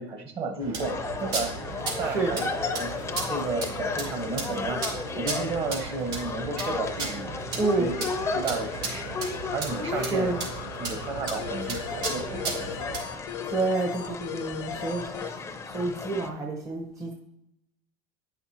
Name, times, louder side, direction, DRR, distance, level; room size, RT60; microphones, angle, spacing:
voice 1, 0.0-1.5 2.0-2.4 2.7-2.9 3.2-4.8 5.2-7.3 7.8-7.9 8.3-9.1 9.5-10.3 10.8-12.7, right 3 dB, 40° right, 5 dB, 1.3 m, -32 dB
sound 1, 0.6-13.0, right 3 dB, 70° right, 2.6 m, -35 dB
sound 2, 0.8-16.3, left 4 dB, 20° left, 0.6 m, -35 dB
voice 2, 2.0-2.3 7.6-7.9 9.9-10.4 13.5-15.3 15.7-17.1, right 3 dB, 25° right, 1 dB, 0.8 m, -29 dB
sound 3, 7.6-15.3, left 8 dB, 75° left, 0.7 m, -39 dB
9.5 x 5.8 x 2.9 m, 0.79 s
supercardioid pair, 130°, 14 cm